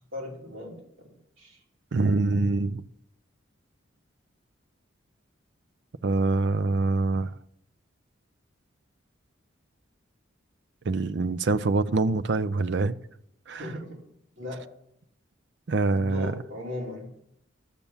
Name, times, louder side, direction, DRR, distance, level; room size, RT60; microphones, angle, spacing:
voice 1, 0.1-1.1 1.4-1.6 13.6-14.0 14.4-14.6 15.9-17.1, left 1 dB, 80° right, 3.4 m, -37 dB
voice 2, 1.9-2.8 6.0-7.3 10.9-12.9 13.5-13.6 15.7-16.3, right 3 dB, 60° right, 0.5 m, -25 dB
12.0 x 6.9 x 7.1 m
head